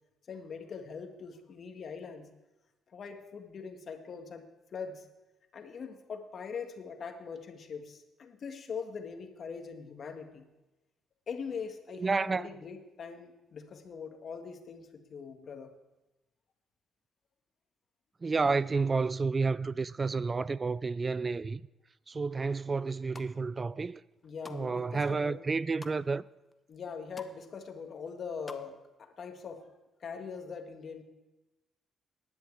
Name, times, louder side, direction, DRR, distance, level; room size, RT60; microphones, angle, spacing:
voice 1, 0.3-2.3 2.9-5.1 5.5-10.5 11.3-15.7 24.2-25.4 26.7-29.7 30.0-31.0, left 6 dB, 55° left, 1.7 m, -42 dB
voice 2, 12.0-12.5 18.2-21.6 22.1-24.0 24.5-26.3, right 4 dB, 30° right, 0.3 m, -30 dB
sound 1, 22.9-23.3 23.9-24.6 25.0-26.0 26.5-26.6 26.8-27.4 27.7-28.6 28.9-29.0, left 3 dB, 25° left, 1.0 m, -49 dB
10.5 x 8.0 x 8.6 m
cardioid pair, 90°, 0 cm